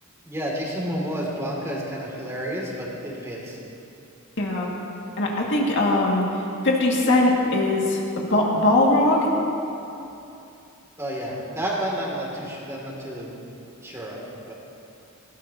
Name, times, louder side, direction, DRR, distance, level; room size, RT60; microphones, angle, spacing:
voice 1, 0.3-3.6 11.0-13.3 13.8-14.5, equal, 15° right, -4 dB, 2.7 m, -30 dB
voice 2, 4.4-4.7 5.2-6.3 6.6-9.3, left 2 dB, 55° left, -3 dB, 2.2 m, -20 dB
19.5 x 17.0 x 2.9 m, 2.8 s
head